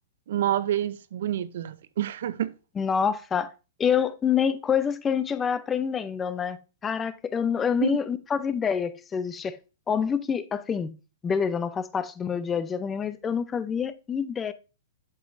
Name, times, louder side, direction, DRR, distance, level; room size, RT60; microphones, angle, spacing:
voice 1, 0.3-2.5 7.8-8.0, right 11 dB, 70° right, 0.5 m, -28 dB
voice 2, 2.8-3.5 3.8-6.6 6.8-9.6 9.9-10.9 11.2-14.5, left 7 dB, 15° left, 0.5 m, -27 dB
8.0 x 7.0 x 2.6 m
hypercardioid pair, 135°, 0 cm